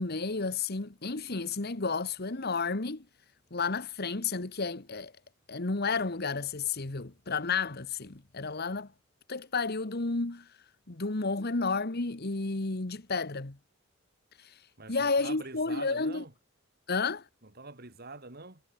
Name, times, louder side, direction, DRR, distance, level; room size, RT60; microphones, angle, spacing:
voice 1, 0.0-3.0 3.5-5.1 5.5-8.9 9.3-10.5 10.9-13.6 14.4-14.6 14.9-16.2 16.9-17.3, left 4 dB, 50° left, 1.4 m, -31 dB
voice 2, 14.8-16.3 17.4-18.6, right 3 dB, 50° right, 3.5 m, -45 dB
head